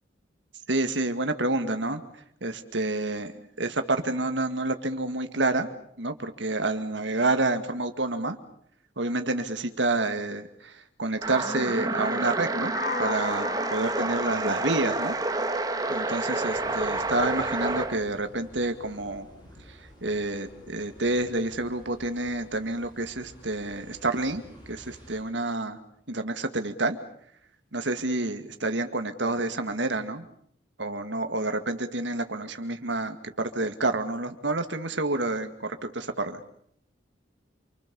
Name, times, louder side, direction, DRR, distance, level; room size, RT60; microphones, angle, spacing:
voice 1, 0.7-2.0 2.4-3.3 3.6-5.7 6.0-8.4 9.0-10.7 11.0-12.7 13.0-15.1 15.9-19.3 20.0-24.4 24.7-25.8 26.1-27.0 27.7-30.3 30.8-36.4, right 2 dB, 75° right, 8 dB, 2.2 m, -28 dB
sound 1, 11.2-18.0, right 2 dB, 20° right, 1.8 m, -29 dB
sound 2, 12.7-16.6, left 5 dB, 50° left, 1.6 m, -38 dB
sound 3, 16.5-25.2, equal, 25° left, 7.2 m, -51 dB
28.0 x 24.5 x 7.1 m, 0.68 s
head